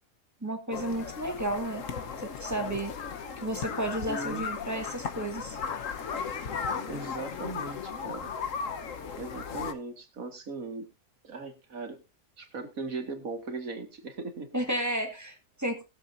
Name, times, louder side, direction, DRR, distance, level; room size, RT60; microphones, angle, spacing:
voice 1, 0.4-1.8 2.2-2.9 3.4-5.6 14.5-15.8, right 1 dB, 10° right, 4 dB, 1.8 m, -32 dB
sound 1, 0.7-9.7, left 6 dB, 60° left, 1.4 m, -36 dB
voice 2, 4.1-4.5 6.9-8.3 9.1-10.9 11.2-12.0 12.4-14.5, right 3 dB, 70° right, 5 dB, 2.3 m, -38 dB
20.5 x 7.5 x 2.6 m, 0.25 s
omnidirectional pair, 1.5 m